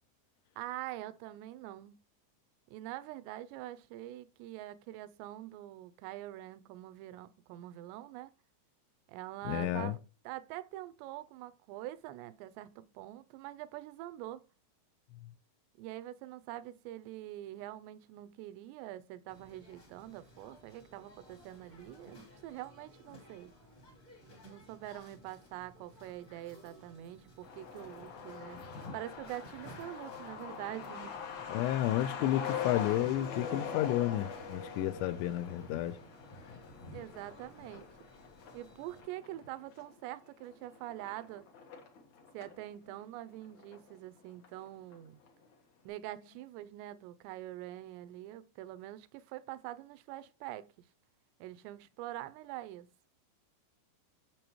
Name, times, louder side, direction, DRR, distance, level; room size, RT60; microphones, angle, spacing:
voice 1, 0.6-2.0 2.7-8.3 9.1-10.0 10.3-14.4 15.8-23.5 24.4-31.2 36.9-37.9 38.5-41.5 42.3-45.2 45.8-50.7 51.4-52.9, right 14 dB, 85° right, 2.6 m, -45 dB
voice 2, 9.5-10.0 31.5-36.0, left 13 dB, 85° left, 2.9 m, -31 dB
sound 1, 19.3-39.0, equal, 35° left, 1.3 m, -57 dB
Truck, 27.4-42.6 42.9-43.0 43.3-44.2 44.4-44.5 44.9-45.3, left 6 dB, 70° left, 1.7 m, -43 dB
7.7 x 6.6 x 3.0 m
omnidirectional pair, 5.2 m